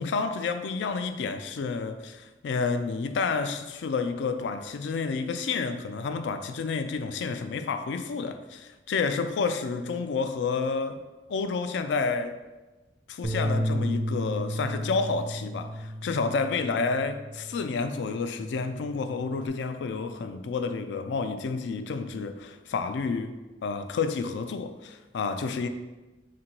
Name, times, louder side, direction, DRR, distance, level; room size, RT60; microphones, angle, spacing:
voice 1, 0.0-11.0 11.3-12.4 13.1-25.7, left 4 dB, 75° left, 0.3 m, -30 dB
Bass guitar, 13.2-17.7 18.1-19.5, equal, 15° right, 0.4 m, -33 dB
3.7 x 2.6 x 4.4 m
head